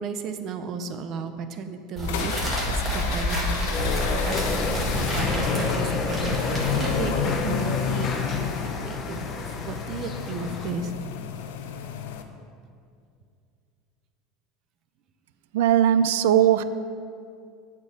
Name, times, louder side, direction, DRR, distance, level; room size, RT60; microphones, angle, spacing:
voice 1, 0.0-8.5 8.8-11.0, right 4 dB, 40° right, 8 dB, 0.6 m, -34 dB
sound 1, 2.0-12.2, left 7 dB, 90° left, 0.6 m, -31 dB
sound 2, 2.0-7.3, equal, 15° right, 1.9 m, -28 dB
sound 3, 3.7-10.7, left 3 dB, 25° left, 0.7 m, -31 dB
voice 2, 15.5-16.6, right 10 dB, 90° right, 13 dB, 0.4 m, -19 dB
8.4 x 4.5 x 7.4 m, 2.3 s
supercardioid pair, 155°, 0 cm